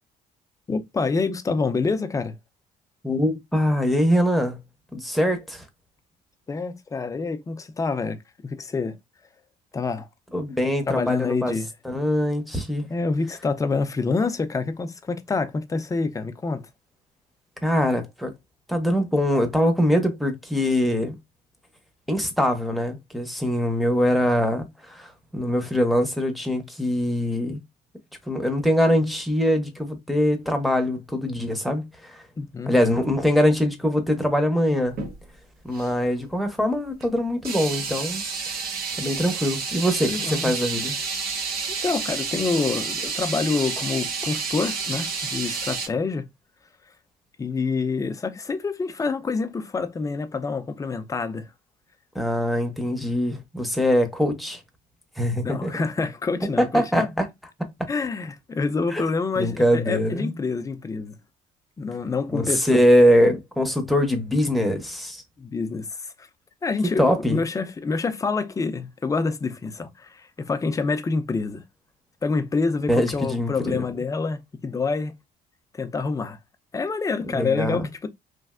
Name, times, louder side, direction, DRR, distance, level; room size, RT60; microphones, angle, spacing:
voice 1, 0.7-2.3 6.5-9.0 9.7-10.1 10.9-11.7 12.9-16.7 32.4-32.7 40.1-40.5 41.8-46.2 47.4-51.5 55.4-57.1 57.9-61.2 61.8-62.8 65.4-66.3 66.6-71.6 72.2-75.1 75.7-76.4 76.7-78.1, left 4 dB, 20° left, 0.5 m, -27 dB
voice 2, 3.0-4.6 4.9-5.6 10.3-11.5 11.8-12.9 17.6-18.3 18.7-21.2 22.1-27.6 28.3-32.2 32.7-35.0 35.6-38.2 39.0-40.9 52.1-54.6 55.2-55.7 56.6-57.3 57.6-57.7 58.9-59.0 59.4-60.3 62.3-65.2 67.0-67.4 72.9-73.8 77.3-77.9, equal, ahead, 0.8 m, -23 dB
sound 1, 34.9-35.2 35.7-35.9 37.0-37.1 37.4-45.9, right 5 dB, 65° right, 1.0 m, -30 dB
3.2 x 2.5 x 2.4 m
cardioid pair, 110°, 17 cm